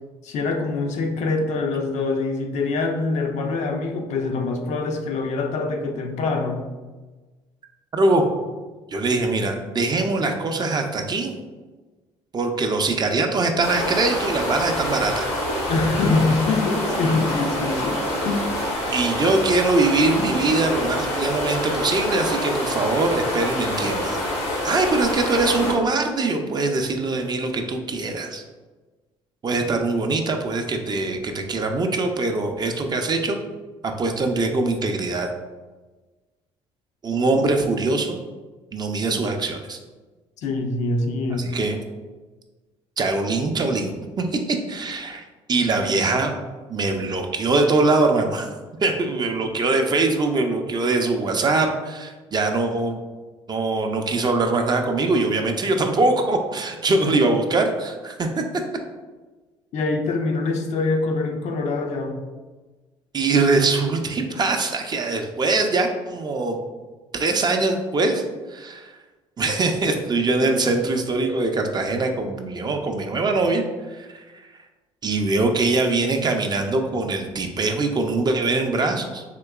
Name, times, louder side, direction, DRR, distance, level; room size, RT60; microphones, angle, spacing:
voice 1, 0.2-6.6 15.7-18.5 40.4-41.5 59.7-62.2, left 3 dB, 60° left, 4 dB, 0.5 m, -24 dB
voice 2, 7.9-8.3 8.9-11.3 12.3-15.3 18.9-24.2 24.6-28.4 29.4-33.4 33.8-35.3 37.0-38.2 38.7-39.8 41.4-41.8 43.0-45.2 45.5-46.3 46.7-48.5 48.8-53.0 53.5-58.4 63.1-66.6 67.1-68.2 68.5-68.9 69.4-74.3 75.0-79.2, right 3 dB, 30° right, 4 dB, 0.4 m, -22 dB
sound 1, 13.6-25.7, left 1 dB, 85° left, 1.0 m, -26 dB
3.7 x 2.8 x 2.3 m, 1.3 s
supercardioid pair, 70°, 13 cm